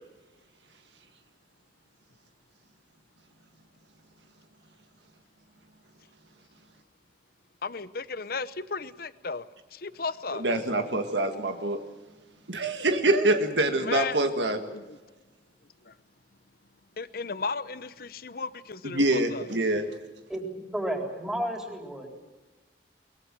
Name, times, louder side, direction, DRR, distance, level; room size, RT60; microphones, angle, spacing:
voice 1, 7.6-9.4 9.7-10.5 13.8-14.2 14.7-15.0 17.0-19.4, left 4 dB, 55° left, 0.9 m, -34 dB
voice 2, 10.3-11.8 12.5-14.6 18.8-19.9, right 2 dB, 90° right, 1.9 m, -25 dB
voice 3, 20.7-22.2, right 1 dB, 5° right, 3.9 m, -32 dB
22.5 x 21.0 x 7.7 m
head